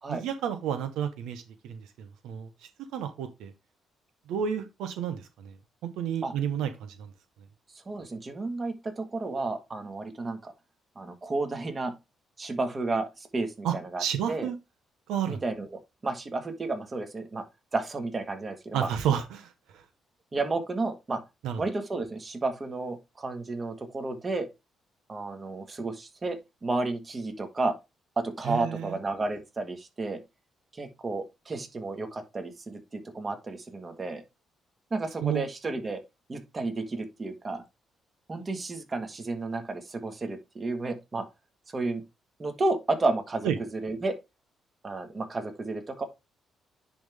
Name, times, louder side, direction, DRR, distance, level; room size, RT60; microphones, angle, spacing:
voice 1, 0.1-1.8 2.2-2.5 2.9-3.5 4.3-5.5 6.0-6.9 13.6-14.6 15.1-15.4 18.7-19.5 21.4-21.6 28.5-28.9 35.2-35.5 43.4-43.5, right 8 dB, 90° right, 0.9 m, -30 dB
voice 2, 7.7-10.5 10.9-11.9 12.4-14.5 15.3-17.4 17.7-18.9 20.3-21.2 21.6-24.5 25.1-27.7 28.2-30.2 30.7-34.2 34.9-36.0 36.3-37.6 38.3-41.2 41.7-42.0 42.4-44.1 44.8-46.0, right 3 dB, 30° right, 1.6 m, -32 dB
10.0 x 3.6 x 3.5 m
cardioid pair, 90°, 0 cm